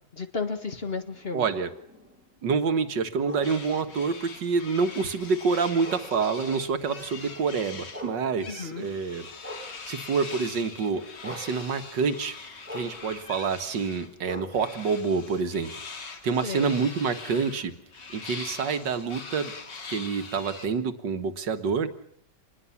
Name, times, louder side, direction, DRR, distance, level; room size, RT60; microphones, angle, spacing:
voice 1, 0.1-1.5 8.5-8.9 16.4-16.7, left 4 dB, 35° left, 8 dB, 2.0 m, -33 dB
sound 1, 1.1-10.3 10.7-15.9 16.4-19.9, left 1 dB, 5° right, 3.8 m, -47 dB
voice 2, 1.3-1.7 2.4-9.3 9.9-12.4 12.7-15.7 16.2-17.7 18.1-19.5 19.9-21.9, right 5 dB, 85° right, 9 dB, 2.2 m, -27 dB
sound 2, 3.4-8.1 8.4-14.1 14.5-20.7, left 4 dB, 80° left, 3.0 m, -42 dB
26.5 x 20.5 x 7.2 m, 0.62 s
omnidirectional pair, 1.9 m